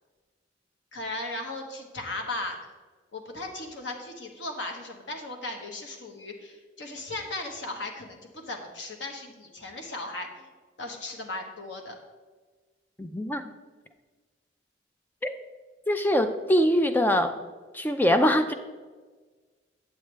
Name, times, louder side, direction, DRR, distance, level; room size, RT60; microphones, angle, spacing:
voice 1, 0.9-2.6 3.1-10.5 10.8-12.0, left 2 dB, 80° left, 3 dB, 1.2 m, -37 dB
voice 2, 13.0-13.5 15.2-15.4 15.9-17.3 17.7-18.5, equal, 10° left, 8 dB, 0.4 m, -23 dB
9.1 x 7.4 x 3.3 m, 1.4 s
head